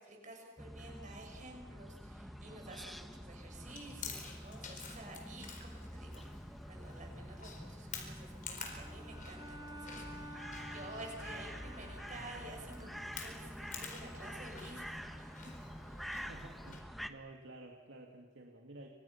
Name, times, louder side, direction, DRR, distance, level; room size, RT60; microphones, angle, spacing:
voice 1, 0.0-6.2 6.6-15.5 15.8-16.1, right 2 dB, 40° right, 2 dB, 6.5 m, -52 dB
sound 1, 0.6-17.1, equal, ahead, 1.2 m, -47 dB
Chewing mastication, 3.7-16.8, left 6 dB, 45° left, 4.4 m, -51 dB
Bowed string instrument, 8.8-13.4, equal, 25° right, 2.9 m, -52 dB
voice 2, 16.3-18.9, right 2 dB, 80° right, 1 dB, 2.3 m, -52 dB
29.5 x 26.0 x 5.9 m, 1.4 s
head